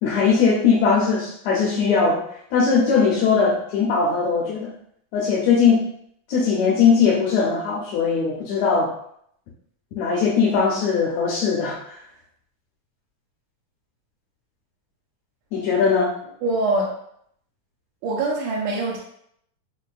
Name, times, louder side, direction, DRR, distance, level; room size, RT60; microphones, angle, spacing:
voice 1, 0.0-2.2 2.5-4.7 5.1-5.9 6.3-8.9 10.0-12.0 15.5-16.1, left 5 dB, 90° left, -4 dB, 1.5 m, -20 dB
voice 2, 16.4-16.9 18.0-19.0, right 2 dB, 80° right, -4 dB, 2.0 m, -23 dB
5.4 x 2.3 x 2.4 m, 0.68 s
omnidirectional pair, 3.8 m